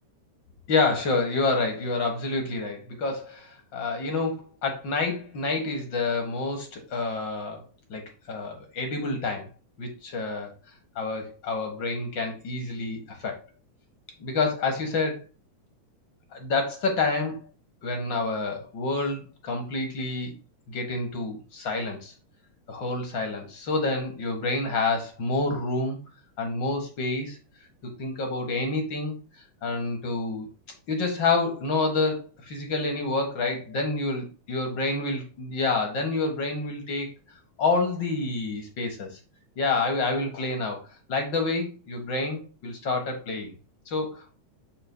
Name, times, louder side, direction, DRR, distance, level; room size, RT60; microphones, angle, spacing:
voice 1, 0.7-8.0 8.3-9.5 9.8-10.5 10.9-13.4 14.2-15.2 16.3-17.4 17.8-20.3 20.7-22.1 22.7-26.0 26.4-27.4 27.8-29.2 29.6-30.5 30.9-37.1 37.6-39.1 39.6-43.5 43.9-44.4, left 3 dB, 45° left, 3 dB, 1.7 m, -28 dB
7.0 x 7.0 x 2.2 m, 0.32 s
omnidirectional pair, 3.4 m